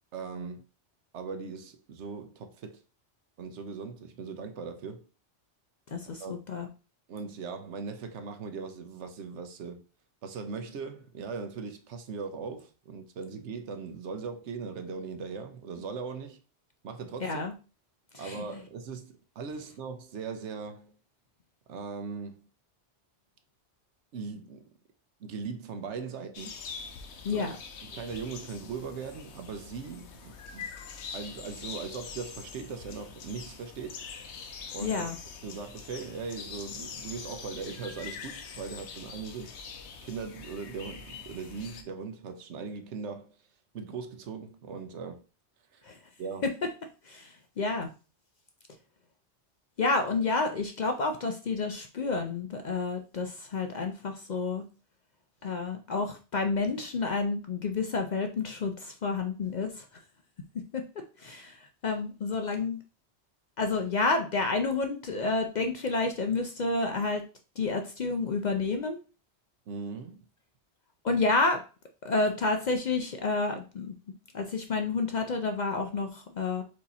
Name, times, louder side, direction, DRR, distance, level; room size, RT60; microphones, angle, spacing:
voice 1, 0.1-0.6 1.1-2.8 3.4-5.0 6.2-6.3 7.1-9.8 10.2-16.4 16.8-17.5 18.2-20.9 21.7-22.4 24.1-24.7 25.2-26.6 27.3-27.5 27.8-30.7 31.1-34.0 34.7-35.0 35.4-39.6 40.0-43.3 43.7-45.2 45.7-45.8 46.2-46.5 69.7-70.2, right 5 dB, 80° right, 1.0 m, -39 dB
voice 2, 5.9-6.7 17.2-17.5 18.1-18.4 27.2-27.6 34.8-35.2 45.8-46.0 47.0-47.9 49.8-54.6 55.4-59.8 60.7-60.8 61.2-62.8 63.6-67.2 67.6-69.0 71.0-71.6 72.0-73.9 74.3-76.6, left 3 dB, 55° left, 0.5 m, -30 dB
sound 1, 26.3-41.8, left 6 dB, 75° left, 1.0 m, -44 dB
4.7 x 2.8 x 4.0 m
omnidirectional pair, 1.2 m